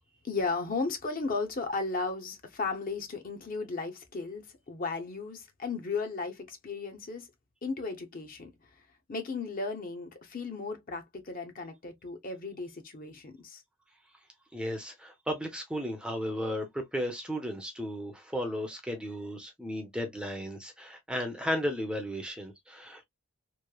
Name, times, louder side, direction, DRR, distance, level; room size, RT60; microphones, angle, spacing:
voice 1, 0.2-7.3 7.6-8.5 9.1-13.6, left 4 dB, 40° left, 0.6 m, -35 dB
voice 2, 14.5-23.0, equal, 5° right, 0.5 m, -34 dB
3.0 x 2.0 x 2.2 m
head